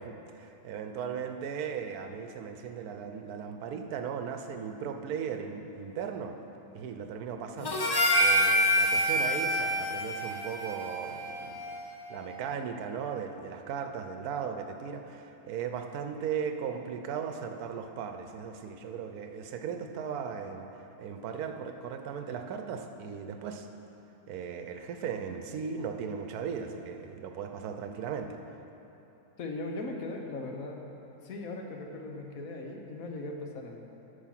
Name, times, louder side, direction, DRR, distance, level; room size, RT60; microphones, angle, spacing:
voice 1, 0.0-6.4 6.7-7.8 8.2-11.6 12.1-20.7 21.0-23.7 24.3-28.4, right 7 dB, 75° right, 6 dB, 1.2 m, -37 dB
Harmonica, 7.6-12.1, equal, 30° left, 0.4 m, -27 dB
voice 2, 29.4-30.8 31.2-33.8, left 2 dB, 65° left, 2 dB, 1.3 m, -39 dB
8.4 x 7.0 x 5.9 m, 3.0 s
omnidirectional pair, 1.6 m